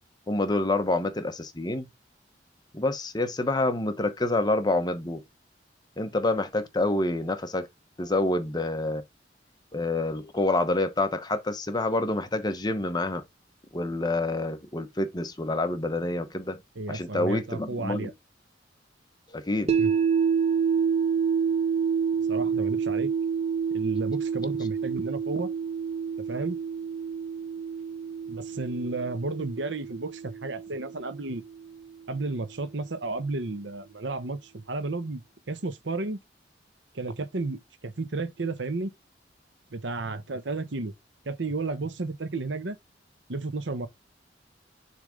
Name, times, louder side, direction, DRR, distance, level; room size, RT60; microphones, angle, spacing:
voice 1, 0.3-1.9 2.7-5.2 6.0-7.7 8.0-9.0 9.7-13.2 13.7-16.6 16.9-18.1 19.3-19.7, left 2 dB, 25° left, 0.9 m, -27 dB
voice 2, 16.8-18.1 19.8-19.9 22.3-23.1 23.7-25.5 26.3-26.6 28.3-31.4 32.1-35.2 35.5-36.2 36.9-38.9 39.7-40.9 41.3-42.8 43.3-43.9, right 3 dB, 75° right, 1.0 m, -32 dB
sound 1, 19.7-31.8, right 6 dB, 35° right, 0.8 m, -28 dB
6.7 x 3.5 x 5.0 m
head